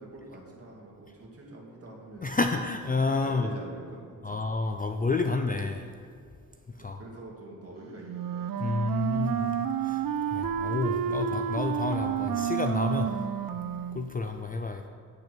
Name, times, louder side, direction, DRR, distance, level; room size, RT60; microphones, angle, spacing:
voice 1, 0.0-2.3 3.2-4.4 6.8-8.7, right 2 dB, 40° right, -3 dB, 2.1 m, -45 dB
voice 2, 2.2-3.5 4.2-5.9 6.8-7.0 8.6-9.5 9.8-10.0 10.3-13.1 13.9-14.9, left 3 dB, 25° left, 5 dB, 0.3 m, -29 dB
Wind instrument woodwind instrument, 8.0-14.1, right 8 dB, 70° right, 0.5 m, -30 dB
8.6 x 6.6 x 6.0 m, 2.3 s
wide cardioid pair, 155°, 35 cm